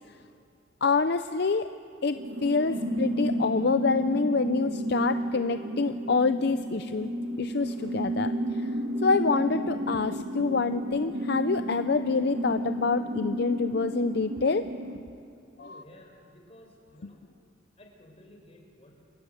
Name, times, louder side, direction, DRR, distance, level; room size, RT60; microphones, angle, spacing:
voice 1, 0.8-1.7 2.0-7.1 7.4-8.7 9.0-14.7 15.6-15.8, left 4 dB, 55° left, 10 dB, 0.5 m, -27 dB
sound 1, 2.1-15.0, equal, 65° right, 2.5 m, -32 dB
voice 2, 15.6-17.2 17.8-19.0, left 1 dB, 30° left, 1 dB, 4.7 m, -53 dB
28.5 x 21.0 x 7.9 m, 2.5 s
head